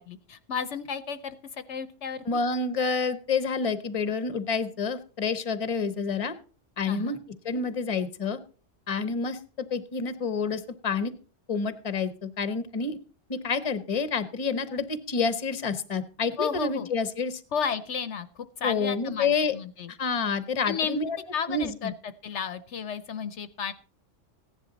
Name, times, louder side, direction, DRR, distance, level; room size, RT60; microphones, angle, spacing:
voice 1, 0.0-2.2 6.9-7.2 16.4-16.9 17.5-19.9 20.6-21.0 21.3-23.7, left 6 dB, 65° left, 13 dB, 1.0 m, -33 dB
voice 2, 2.3-6.3 6.8-7.2 7.4-8.4 8.9-11.1 11.5-13.0 13.3-17.4 18.6-19.5 19.9-21.2 21.5-21.9, left 4 dB, 30° left, 13 dB, 1.0 m, -28 dB
15.5 x 10.5 x 4.0 m, 0.38 s
omnidirectional pair, 1.3 m